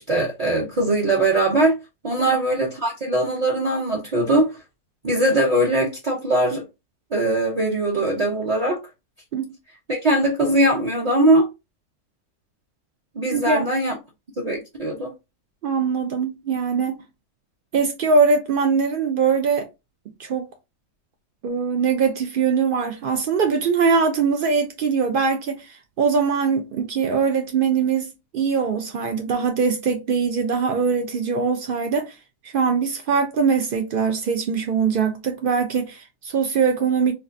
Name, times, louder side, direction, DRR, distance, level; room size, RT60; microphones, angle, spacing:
voice 1, 0.0-1.7 2.0-4.5 5.0-6.6 7.1-8.8 9.9-11.5 13.2-13.9 14.4-15.1, right 1 dB, 40° right, 0.5 m, -21 dB
voice 2, 13.3-13.7 15.6-17.0 17.7-19.7 20.2-20.5 21.4-25.7 26.0-32.1 32.4-37.1, right 5 dB, 90° right, 0.4 m, -22 dB
4.3 x 2.4 x 2.5 m
omnidirectional pair, 1.6 m